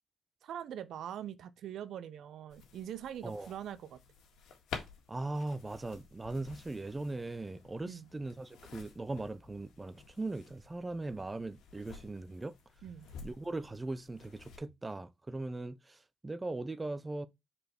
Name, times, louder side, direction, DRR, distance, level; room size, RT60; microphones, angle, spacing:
voice 1, 0.4-4.0 7.8-8.1 12.8-13.1, right 10 dB, 75° right, 0.7 m, -43 dB
sound 1, 2.5-14.6, left 6 dB, 85° left, 1.7 m, -51 dB
voice 2, 5.1-12.5 13.2-17.3, right 2 dB, 20° right, 0.5 m, -39 dB
5.1 x 4.2 x 4.4 m
cardioid pair, 105°, 0 cm